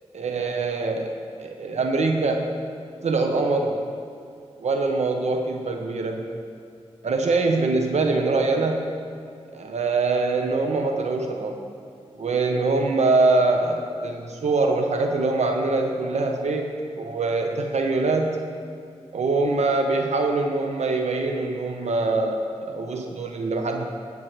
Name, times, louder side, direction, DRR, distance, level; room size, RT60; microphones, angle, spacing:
voice 1, 0.1-2.5 3.0-3.8 4.6-6.2 7.0-8.9 9.5-11.6 12.1-16.7 17.0-18.4 19.1-23.8, right 3 dB, 75° right, 3 dB, 1.0 m, -23 dB
19.0 x 7.3 x 3.2 m, 2.4 s
cardioid pair, 55°, 12 cm